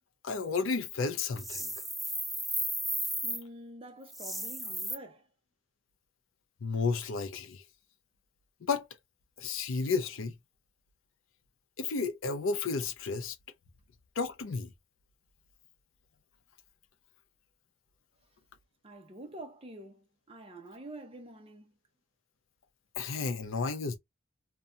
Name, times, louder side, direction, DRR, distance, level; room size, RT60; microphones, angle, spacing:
voice 1, 0.2-1.7 6.6-7.6 8.6-8.9 9.4-10.3 11.8-13.4 14.2-14.7 23.0-24.0, left 4 dB, 85° left, 0.6 m, -32 dB
sound 1, 1.3-3.4 4.1-4.9, equal, ahead, 0.3 m, -34 dB
voice 2, 3.2-5.3 18.8-21.7, right 1 dB, 30° right, 0.7 m, -47 dB
2.7 x 2.2 x 2.4 m
head